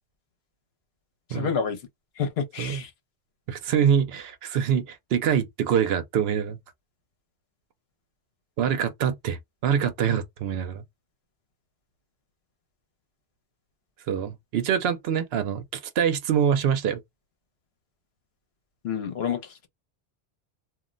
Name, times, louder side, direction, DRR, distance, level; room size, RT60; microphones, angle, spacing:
voice 1, 1.3-1.8 2.2-2.9 18.8-19.7, left 6 dB, 70° left, 1.0 m, -29 dB
voice 2, 3.5-6.6 8.6-10.8 14.1-17.0, right 8 dB, 70° right, 0.9 m, -25 dB
2.4 x 2.1 x 3.7 m
omnidirectional pair, 1.1 m